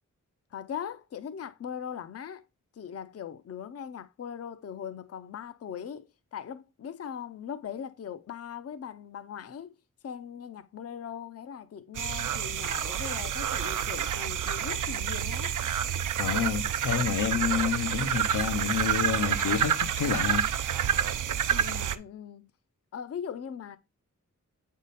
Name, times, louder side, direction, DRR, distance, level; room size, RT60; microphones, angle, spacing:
voice 1, 0.5-2.4 2.7-9.8 10.0-15.6 21.5-22.5 22.9-23.8, left 8 dB, 50° left, 0.5 m, -40 dB
sound 1, 11.9-22.0, right 9 dB, 80° right, 0.6 m, -28 dB
voice 2, 16.2-20.5, left 8 dB, 85° left, 0.7 m, -29 dB
8.3 x 3.7 x 4.0 m
wide cardioid pair, 135°, 31 cm